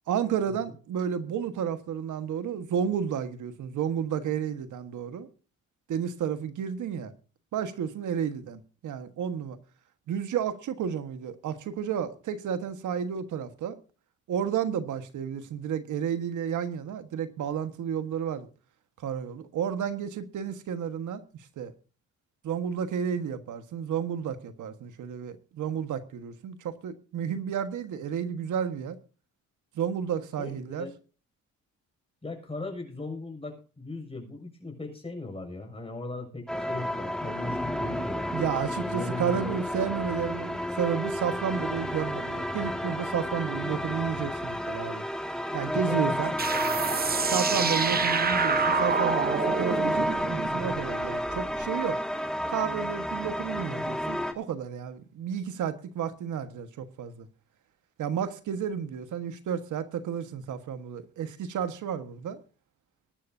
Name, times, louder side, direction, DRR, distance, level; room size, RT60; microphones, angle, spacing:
voice 1, 0.1-5.3 5.9-7.1 7.5-9.6 10.1-13.8 14.3-18.5 19.0-21.2 21.6-21.7 22.4-29.0 29.7-30.9 38.3-45.0 45.5-46.3 47.2-52.0 52.5-57.3 58.0-62.4, right 8 dB, 75° right, 1.5 m, -32 dB
voice 2, 30.4-30.9 32.2-38.3 38.7-39.9 45.7-46.2 46.5-47.2, left 2 dB, 20° left, 6.8 m, -38 dB
sound 1, 36.5-54.3, equal, ahead, 2.1 m, -31 dB
sound 2, 46.4-51.7, right 5 dB, 30° right, 0.9 m, -28 dB
22.0 x 11.5 x 2.8 m
cardioid pair, 90°, 31 cm